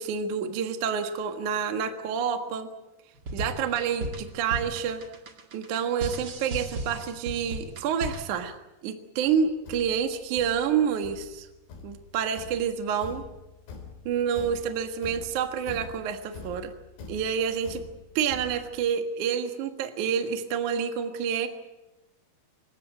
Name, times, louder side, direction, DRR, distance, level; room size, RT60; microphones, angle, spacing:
voice 1, 0.0-2.7 3.3-5.0 5.5-8.5 8.8-11.5 11.8-13.2 14.1-16.7 17.1-17.8 18.2-21.5, right 7 dB, 55° right, 6 dB, 2.3 m, -28 dB
sound 1, 3.2-8.4, right 1 dB, 85° right, 0.9 m, -36 dB
Thump thud, 9.3-18.8, left 4 dB, 65° left, 5.7 m, -44 dB
26.0 x 16.0 x 9.2 m, 1.0 s
omnidirectional pair, 5.4 m